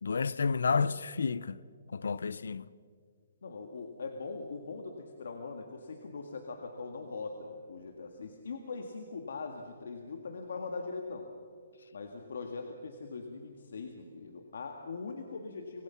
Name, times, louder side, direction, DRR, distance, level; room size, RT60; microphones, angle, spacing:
voice 1, 0.0-1.6 1.9-2.7, left 5 dB, 85° left, 0.7 m, -30 dB
voice 2, 3.4-11.3 11.9-15.8, left 4 dB, 65° left, 1.9 m, -41 dB
25.5 x 20.0 x 5.9 m
hypercardioid pair, 175°, 0 cm